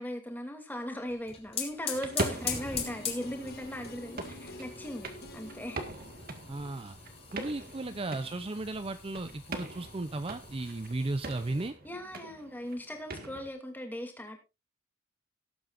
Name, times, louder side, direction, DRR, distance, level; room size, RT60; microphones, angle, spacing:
voice 1, 0.0-5.8 7.8-8.0 11.8-14.4, equal, 10° left, 4 dB, 2.5 m, -39 dB
sound 1, 1.1-11.7, left 6 dB, 30° left, 2.9 m, -42 dB
sound 2, 1.7-7.6 7.9-8.0, left 1 dB, 45° left, 1.5 m, -50 dB
sound 3, 1.9-13.5, right 2 dB, 45° right, 1.8 m, -42 dB
voice 2, 6.5-7.0 7.3-11.7, right 2 dB, 25° right, 10 dB, 0.5 m, -35 dB
18.5 x 8.7 x 2.6 m, 0.26 s
head